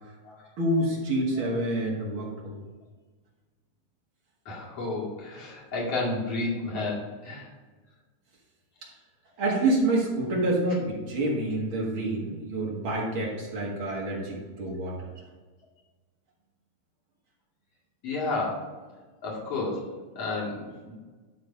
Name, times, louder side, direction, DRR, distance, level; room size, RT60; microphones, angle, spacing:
voice 1, 0.6-2.6 9.4-15.1, right 1 dB, 45° right, -3 dB, 2.2 m, -27 dB
voice 2, 4.5-7.4 18.0-18.7 19.2-19.9 20.2-20.9, left 2 dB, 50° left, -4 dB, 3.2 m, -31 dB
11.5 x 3.9 x 5.2 m, 1.3 s
omnidirectional pair, 3.6 m